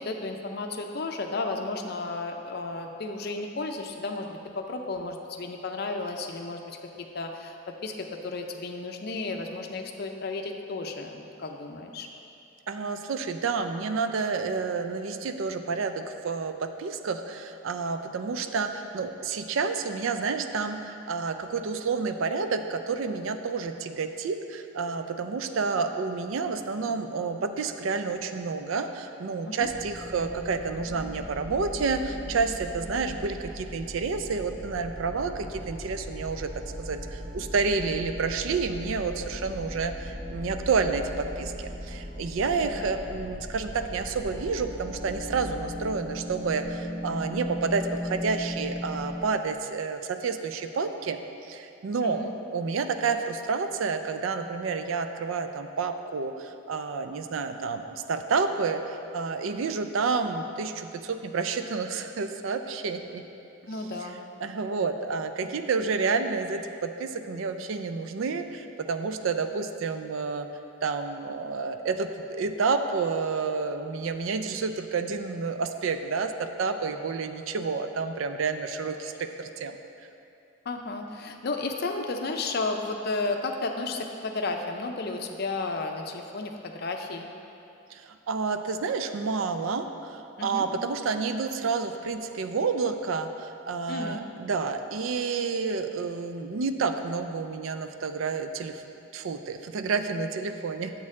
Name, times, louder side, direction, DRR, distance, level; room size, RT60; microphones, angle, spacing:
voice 1, 0.0-6.8 7.1-12.1 29.5-29.7 42.6-42.7 52.0-52.3 63.7-64.2 64.8-64.9 65.4-65.5 80.7-87.3 90.4-90.7 93.9-94.3, left 3 dB, 50° left, 3 dB, 0.5 m, -33 dB
voice 2, 12.7-51.2 51.5-52.2 52.5-63.2 64.4-70.5 70.8-79.8 87.9-98.8 99.1-100.9, right 4 dB, 70° right, 8 dB, 0.4 m, -29 dB
sound 1, 29.6-49.2, equal, 15° right, 0.7 m, -38 dB
sound 2, 39.8-46.6, left 1 dB, 45° right, 0.9 m, -50 dB
7.2 x 6.4 x 3.7 m, 2.7 s
head